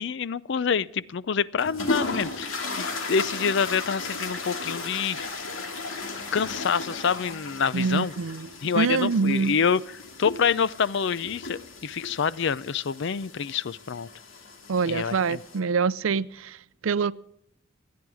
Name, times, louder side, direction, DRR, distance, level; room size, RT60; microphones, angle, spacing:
voice 1, 0.0-5.3 6.3-8.1 8.6-9.8 10.2-14.1 14.9-15.4, left 6 dB, 65° left, 0.5 m, -27 dB
sound 1, 1.6-15.6, left 3 dB, 90° left, 2.4 m, -36 dB
voice 2, 7.7-9.6 14.7-17.1, right 5 dB, 90° right, 0.5 m, -25 dB
27.0 x 9.5 x 4.8 m
head